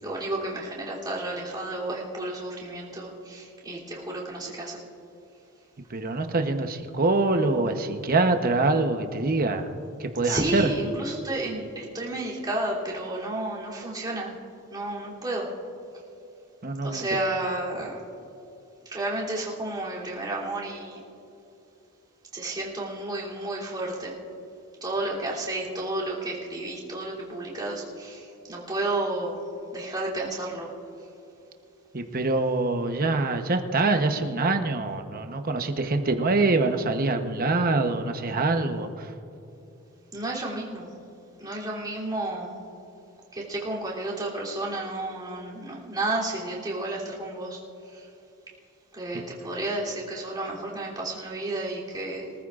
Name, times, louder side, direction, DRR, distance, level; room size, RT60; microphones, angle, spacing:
voice 1, 0.0-4.8 10.2-14.4 14.7-15.5 16.8-18.0 18.8-21.0 22.3-24.2 24.8-29.4 29.7-30.7 40.1-40.9 41.4-42.6 43.3-47.6 47.9-48.1 48.9-52.3, right 2 dB, 20° right, -6 dB, 3.1 m, -31 dB
voice 2, 5.9-9.7 10.0-10.7 16.6-17.0 31.9-39.1, right 3 dB, 40° right, 6 dB, 1.0 m, -25 dB
24.0 x 14.5 x 2.5 m, 2.9 s
head